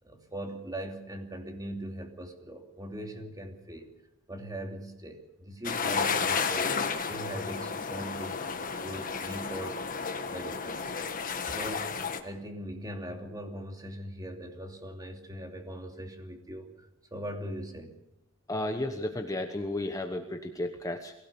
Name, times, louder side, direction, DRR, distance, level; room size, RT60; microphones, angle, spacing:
voice 1, 0.0-3.9 4.3-8.4 8.8-9.8 10.2-12.0 12.2-17.9, right 1 dB, 20° right, 3 dB, 2.8 m, -40 dB
sound 1, 5.6-12.2, left 5 dB, 40° left, 1.6 m, -32 dB
voice 2, 18.5-21.1, left 1 dB, 15° left, 5 dB, 1.1 m, -33 dB
22.5 x 16.5 x 7.0 m, 0.88 s
head